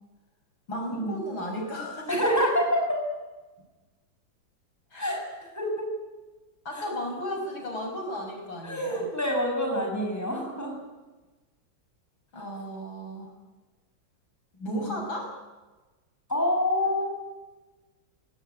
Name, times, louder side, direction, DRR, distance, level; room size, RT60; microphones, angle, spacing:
voice 1, 0.7-2.5 4.9-5.1 6.6-9.1 12.3-13.3 14.5-15.3, equal, 85° left, 1 dB, 7.0 m, -34 dB
voice 2, 2.1-3.0 5.0-5.9 6.7-6.9 8.6-10.8 14.7-15.0 16.3-17.1, equal, 10° left, 1 dB, 6.2 m, -27 dB
25.0 x 18.0 x 9.3 m, 1.2 s
omnidirectional pair, 2.1 m